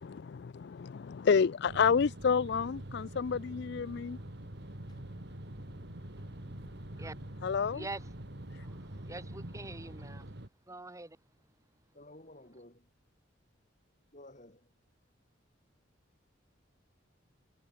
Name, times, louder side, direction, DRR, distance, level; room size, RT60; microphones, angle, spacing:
voice 1, 0.0-4.2 7.4-7.8, left 6 dB, 55° left, 0.4 m, -29 dB
sound 1, 1.7-10.5, right 1 dB, 55° right, 2.2 m, -45 dB
sound 2, 2.0-2.9 4.9-5.8, equal, 20° left, 6.9 m, -67 dB
voice 2, 7.7-8.1 8.6-10.3 10.7-11.2, right 2 dB, 15° right, 1.1 m, -45 dB
voice 3, 11.9-13.0 14.1-14.8, left 1 dB, 40° left, 4.4 m, -54 dB
head